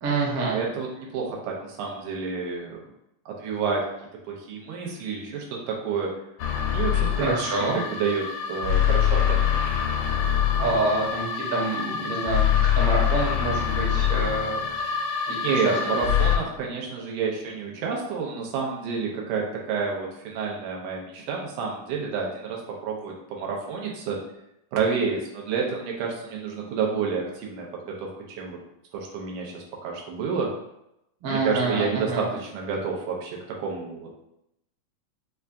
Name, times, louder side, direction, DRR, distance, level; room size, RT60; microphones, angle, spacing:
voice 1, 0.0-0.6 7.2-7.8 10.6-14.6 15.3-16.0 31.2-32.2, right 3 dB, 65° right, -4 dB, 1.5 m, -27 dB
voice 2, 0.5-2.8 3.3-3.8 4.3-6.1 6.7-9.6 15.4-24.2 24.7-27.7 28.0-28.6 28.9-30.5 31.3-34.2, right 5 dB, 90° right, -2 dB, 2.2 m, -29 dB
sound 1, 6.4-16.4, left 8 dB, 85° left, 2.1 m, -24 dB
5.4 x 2.2 x 2.4 m, 0.83 s
omnidirectional pair, 3.5 m